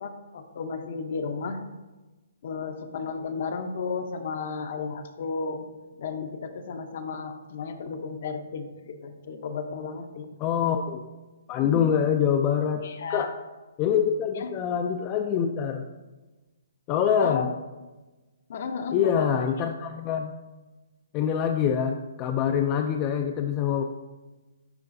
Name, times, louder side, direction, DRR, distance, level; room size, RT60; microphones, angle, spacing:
voice 1, 0.0-1.6 2.4-5.7 6.0-10.3 11.6-11.7 12.8-13.3 14.4-14.5 17.2-17.5 18.5-19.4, left 5 dB, 55° left, 7 dB, 0.7 m, -33 dB
voice 2, 10.4-11.0 11.5-12.8 13.1-13.3 13.8-15.9 16.9-17.5 18.9-20.3 21.1-23.8, left 8 dB, 25° left, 4 dB, 0.3 m, -25 dB
10.5 x 3.9 x 2.6 m, 1.2 s
hypercardioid pair, 155°, 0 cm